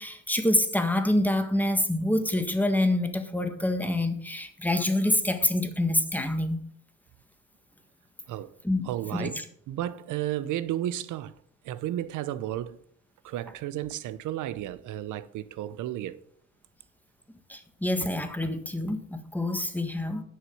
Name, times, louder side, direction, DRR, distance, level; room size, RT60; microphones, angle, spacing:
voice 1, 0.0-6.6 8.6-9.4 17.5-20.2, left 1 dB, 5° left, 1.5 m, -26 dB
voice 2, 8.8-9.4 9.7-11.3 11.6-12.8 13.2-16.2, right 12 dB, 80° right, 0.7 m, -33 dB
9.8 x 6.4 x 6.9 m
cardioid pair, 90°, 30 cm